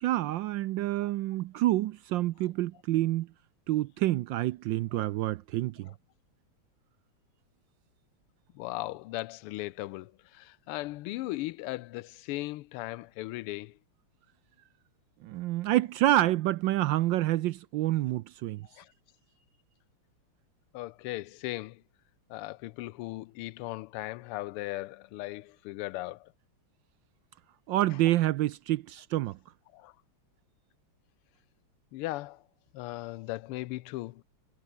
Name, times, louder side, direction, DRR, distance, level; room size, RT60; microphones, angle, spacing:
voice 1, 0.0-3.3 3.7-5.9 15.2-18.7 27.7-29.4, right 15 dB, 75° right, 1.1 m, -28 dB
voice 2, 8.5-13.7 18.8-18.9 20.7-21.8 22.3-26.3 29.7-29.9 31.9-32.4 32.7-34.2, left 18 dB, 85° left, 1.5 m, -37 dB
omnidirectional pair, 2.4 m